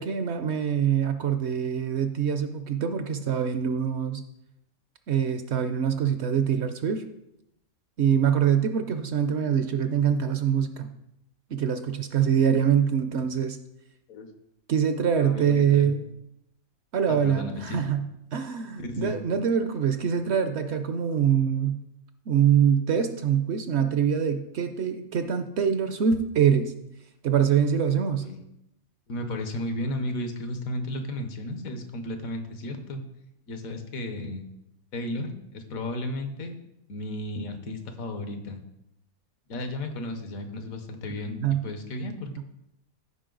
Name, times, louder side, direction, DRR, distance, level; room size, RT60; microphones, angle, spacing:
voice 1, 0.0-4.2 5.1-7.0 8.0-10.9 11.5-13.6 14.7-16.0 16.9-18.1 18.3-21.8 22.3-26.7 27.2-28.3 41.3-41.6 42.4-42.5, right 8 dB, 60° right, 8 dB, 0.8 m, -24 dB
voice 2, 15.1-15.9 17.1-17.8 18.8-19.2 28.1-28.4 29.1-33.0 33.5-34.5 34.9-36.6 36.9-38.6 39.5-42.4, left 1 dB, 75° left, 7 dB, 1.5 m, -34 dB
14.0 x 5.2 x 3.9 m, 0.83 s
omnidirectional pair, 1.5 m